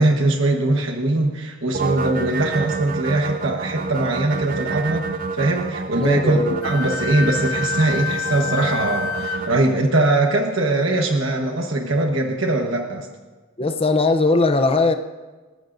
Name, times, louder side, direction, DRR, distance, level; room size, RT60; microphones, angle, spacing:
voice 1, 0.0-5.0 5.3-13.1, right 2 dB, 60° right, 2 dB, 1.3 m, -21 dB
sound 1, 1.7-9.6, right 4 dB, 40° right, 0.6 m, -28 dB
voice 2, 6.0-6.6 13.6-14.9, left 3 dB, 25° left, 7 dB, 0.6 m, -19 dB
Wind instrument woodwind instrument, 6.6-9.4, left 7 dB, 75° left, 0.8 m, -28 dB
29.0 x 14.5 x 2.6 m, 1.3 s
head